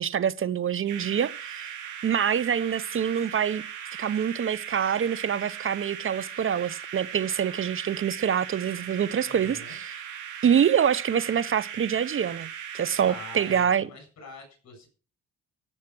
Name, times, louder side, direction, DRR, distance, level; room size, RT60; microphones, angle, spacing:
voice 1, 0.0-1.7 2.0-3.6 4.0-9.9 10.4-12.5 12.7-13.9, right 8 dB, 45° right, 0.7 m, -25 dB
sound 1, 0.8-13.7, right 8 dB, 80° right, 4.1 m, -39 dB
voice 2, 9.2-9.8 13.0-14.9, left 3 dB, 60° left, 7.6 m, -44 dB
15.5 x 7.3 x 6.1 m
cardioid pair, 90°, 30 cm